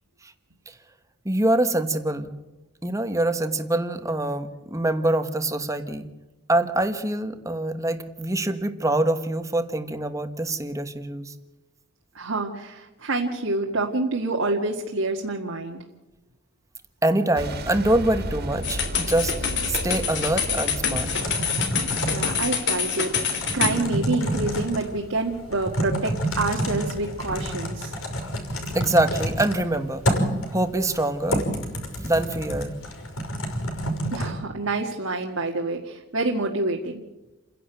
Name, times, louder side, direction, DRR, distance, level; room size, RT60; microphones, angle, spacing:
voice 1, 1.2-2.3 2.8-6.1 6.5-11.3 17.0-21.1 28.7-30.1 30.5-31.4 32.0-32.7, right 1 dB, 15° right, 9 dB, 1.2 m, -25 dB
voice 2, 12.2-15.8 22.1-27.9 34.1-37.0, right 2 dB, 75° right, 0 dB, 1.9 m, -27 dB
Boom, 17.4-22.2, right 1 dB, 45° right, 2.3 m, -33 dB
sound 1, 18.6-23.8, left 6 dB, 55° left, 3.5 m, -26 dB
Typing, 20.9-34.3, equal, 75° left, 5.8 m, -29 dB
29.5 x 11.0 x 9.0 m, 1.0 s
head